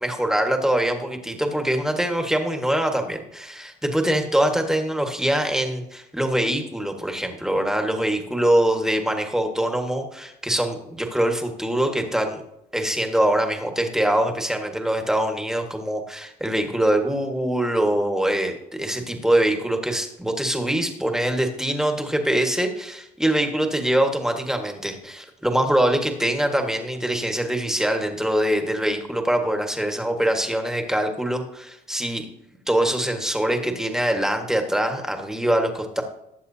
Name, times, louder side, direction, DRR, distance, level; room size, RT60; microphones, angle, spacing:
voice 1, 0.0-12.4 12.7-32.2 32.7-36.0, right 1 dB, 5° right, 4 dB, 1.6 m, -23 dB
19.5 x 7.5 x 2.8 m, 0.83 s
cardioid pair, 110°, 17 cm